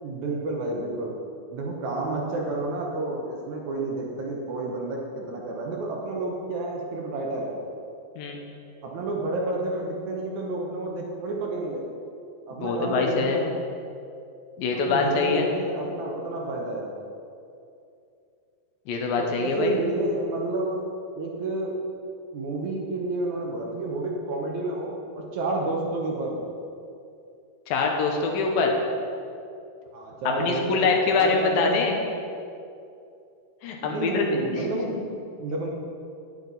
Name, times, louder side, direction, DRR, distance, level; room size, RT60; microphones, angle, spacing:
voice 1, 0.0-1.2 1.5-7.6 8.8-11.8 12.5-13.6 14.7-16.9 19.2-20.9 21.2-21.8 22.3-26.5 29.9-31.8 33.8-35.0 35.4-35.7, right 2 dB, 65° right, -1 dB, 2.0 m, -30 dB
voice 2, 12.6-13.4 14.6-15.5 18.9-19.8 27.7-28.7 30.4-32.0 33.6-34.2 34.5-34.7, left 4 dB, 80° left, 1 dB, 2.7 m, -24 dB
9.9 x 8.6 x 4.1 m, 2.5 s
omnidirectional pair, 4.2 m